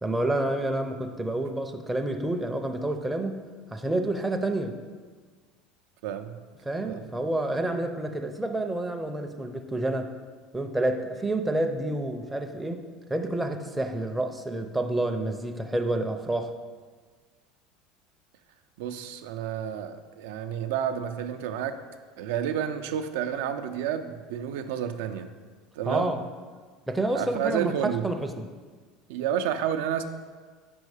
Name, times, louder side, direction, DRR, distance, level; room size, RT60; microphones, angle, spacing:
voice 1, 0.0-4.8 6.6-10.1 10.5-12.8 13.1-16.5 25.8-26.3 26.9-28.4, right 1 dB, 10° right, 5 dB, 0.5 m, -29 dB
voice 2, 6.0-6.4 6.8-7.1 18.8-21.8 22.2-25.3 25.8-26.2 27.1-28.0 29.1-30.0, right 9 dB, 80° right, 8 dB, 0.4 m, -30 dB
5.3 x 4.6 x 4.8 m, 1.5 s
supercardioid pair, 125°, 0 cm